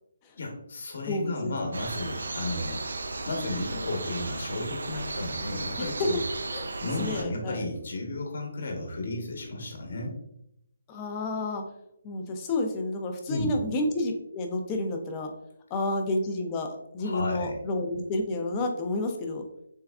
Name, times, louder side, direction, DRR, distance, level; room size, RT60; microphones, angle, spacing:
voice 1, 0.4-2.8 3.3-6.2 6.8-10.2 13.3-13.5 17.0-17.5, left 2 dB, 60° left, 1 dB, 1.0 m, -33 dB
voice 2, 1.1-1.5 5.8-5.9 6.5-6.7 7.0-7.6 10.9-11.6 12.0-15.3 15.7-16.7 16.9-19.4, left 2 dB, 20° left, 3 dB, 0.4 m, -30 dB
sound 1, 1.7-7.2, right 3 dB, 80° right, 0.4 m, -35 dB
3.5 x 3.2 x 2.3 m, 0.76 s
hypercardioid pair, 165°, 0 cm